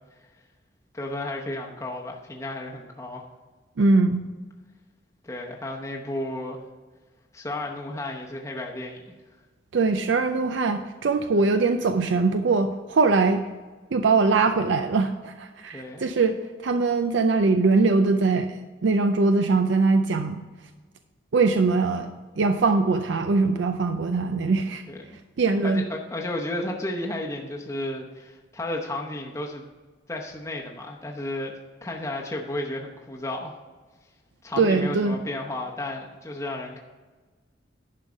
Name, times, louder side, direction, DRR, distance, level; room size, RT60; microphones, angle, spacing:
voice 1, 0.9-3.2 5.2-6.6 7.3-9.1 15.7-16.0 24.9-25.2 25.6-29.6 30.1-31.5 31.8-33.6 34.4-36.8, left 1 dB, 15° left, -1 dB, 0.8 m, -33 dB
voice 2, 3.8-4.2 9.7-13.4 13.9-16.4 16.6-20.4 21.3-22.1 22.4-24.8 25.4-25.8 34.6-35.2, right 3 dB, 70° right, 8 dB, 0.5 m, -22 dB
10.5 x 5.5 x 5.1 m, 1.3 s
head